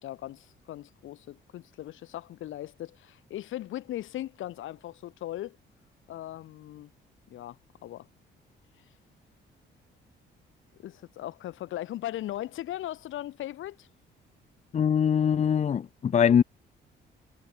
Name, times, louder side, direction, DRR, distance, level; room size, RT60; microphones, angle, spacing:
voice 1, 0.0-5.6 6.1-6.9 7.3-8.1 10.8-13.9, left 13 dB, 80° left, 3.2 m, -38 dB
voice 2, 14.7-16.4, left 8 dB, 35° left, 0.5 m, -22 dB
cardioid pair, 90°, 20 cm